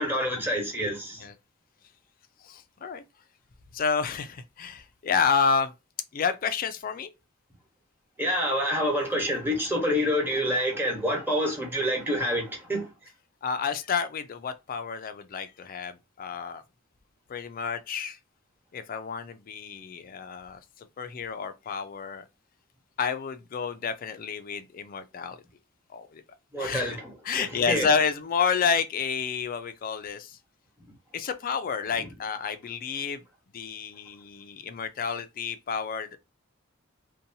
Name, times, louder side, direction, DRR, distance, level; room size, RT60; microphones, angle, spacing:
voice 1, 0.0-1.3 8.2-12.9 26.5-27.9, equal, 10° right, 1.0 m, -27 dB
voice 2, 2.4-3.0 3.7-5.7 6.1-7.1 13.4-16.6 17.3-18.2 18.7-22.2 23.0-25.4 25.9-26.2 26.6-26.9 27.3-30.4 31.1-33.2 33.5-36.2, left 6 dB, 45° left, 0.4 m, -30 dB
2.7 x 2.2 x 2.7 m
head